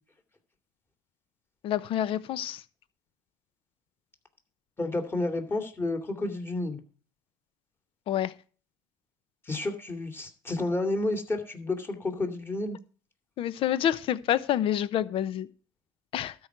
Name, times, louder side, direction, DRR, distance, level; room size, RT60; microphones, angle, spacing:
voice 1, 1.6-2.6 8.1-8.3 13.4-15.5 16.1-16.3, left 11 dB, 55° left, 0.8 m, -28 dB
voice 2, 4.8-6.8 9.4-12.8, left 2 dB, 20° left, 2.6 m, -30 dB
12.5 x 4.8 x 8.0 m
supercardioid pair, 90°, 11 cm